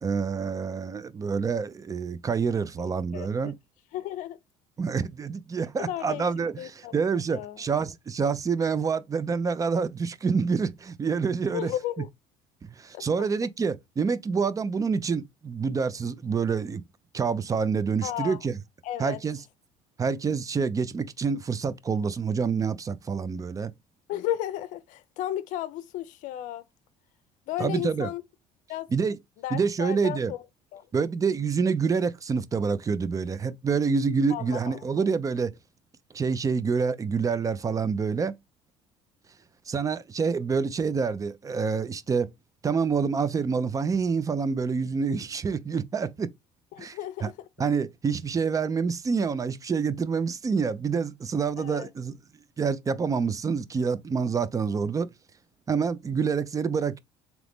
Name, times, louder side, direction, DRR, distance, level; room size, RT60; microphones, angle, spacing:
voice 1, 0.0-3.5 4.8-11.7 12.8-16.8 17.1-18.6 19.0-19.4 20.0-23.7 27.6-28.1 28.9-29.2 29.5-30.3 30.9-35.5 36.1-38.3 39.7-42.3 42.6-46.3 46.8-47.3 47.6-52.1 52.6-55.1 55.7-57.0, right 5 dB, 25° right, 0.5 m, -27 dB
voice 2, 2.8-3.3 3.9-4.4 5.8-6.3 6.6-6.9 7.3-7.6 11.5-12.1 12.9-13.0 18.0-18.4 18.8-19.2 24.1-26.6 27.5-28.2 28.7-28.9 29.4-30.4 30.7-30.8 34.3-34.8 46.7-47.2 51.6-51.9, left 12 dB, 70° left, 0.5 m, -33 dB
3.8 x 3.0 x 3.5 m
supercardioid pair, 95°, 14 cm